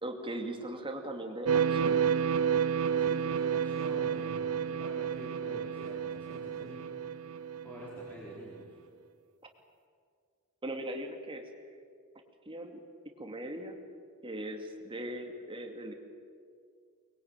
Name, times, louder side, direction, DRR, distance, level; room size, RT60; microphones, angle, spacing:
voice 1, 0.0-2.0 10.6-11.5 12.5-12.8 13.2-13.8 14.2-15.9, right 1 dB, 25° right, 4 dB, 2.5 m, -39 dB
sound 1, 1.5-8.1, right 7 dB, 70° right, 0.7 m, -30 dB
voice 2, 2.7-6.9 7.3-8.8, equal, 10° left, -6 dB, 4.4 m, -48 dB
24.0 x 21.5 x 9.0 m, 2.2 s
head